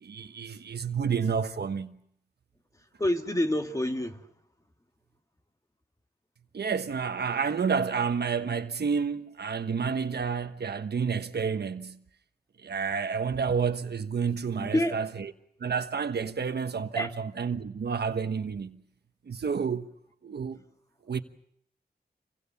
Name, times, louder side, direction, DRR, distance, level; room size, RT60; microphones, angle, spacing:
voice 1, 0.0-2.0 6.5-12.0 12.6-15.3 15.6-18.8 19.3-19.9 20.2-20.6 21.1-21.2, right 6 dB, 75° right, 1.2 m, -30 dB
voice 2, 3.0-4.2 14.6-15.0 17.0-17.1, left 1 dB, 20° left, 1.9 m, -27 dB
28.0 x 23.5 x 7.0 m
wide cardioid pair, 135°, 17 cm